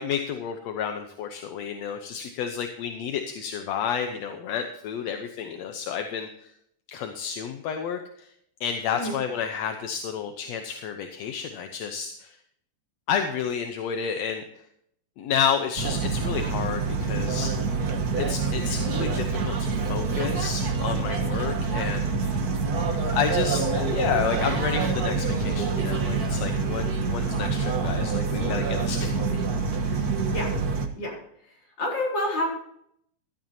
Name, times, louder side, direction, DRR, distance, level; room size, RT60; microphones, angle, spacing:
voice 1, 0.0-6.5 6.9-8.3 8.6-12.4 13.1-14.4 15.2-17.5 18.2-22.4 23.0-29.4 29.9-30.1, left 7 dB, 70° left, 5 dB, 1.9 m, -31 dB
sound 1, 15.8-30.9, right 4 dB, 60° right, 0.9 m, -26 dB
voice 2, 31.8-32.5, left 1 dB, 35° left, -2 dB, 4.7 m, -28 dB
16.0 x 12.5 x 2.8 m, 0.71 s
omnidirectional pair, 3.7 m